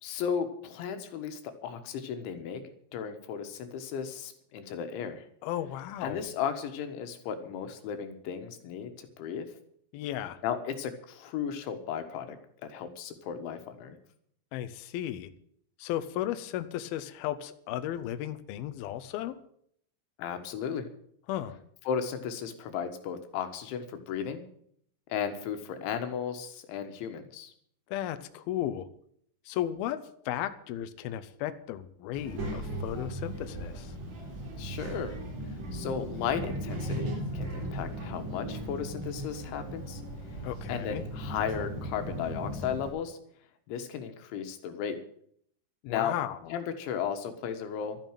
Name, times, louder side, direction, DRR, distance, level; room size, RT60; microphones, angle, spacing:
voice 1, 0.0-2.6 2.9-5.2 6.0-9.5 10.4-12.4 12.6-14.0 20.2-20.9 21.9-24.4 25.1-27.5 34.6-35.2 35.7-40.0 40.7-43.2 43.7-45.0 45.8-46.2 46.5-48.0, left 7 dB, 90° left, 8 dB, 3.9 m, -35 dB
voice 2, 5.4-6.2 9.9-10.4 14.5-15.3 15.8-19.4 21.3-21.6 27.9-28.9 29.5-30.0 30.3-33.9 40.4-41.0 45.9-46.4, left 12 dB, 75° left, 11 dB, 2.4 m, -34 dB
Child speech kid speaking, 32.1-42.9, right 1 dB, 40° right, 4.5 m, -37 dB
13.0 x 9.2 x 9.1 m, 0.66 s
omnidirectional pair, 5.2 m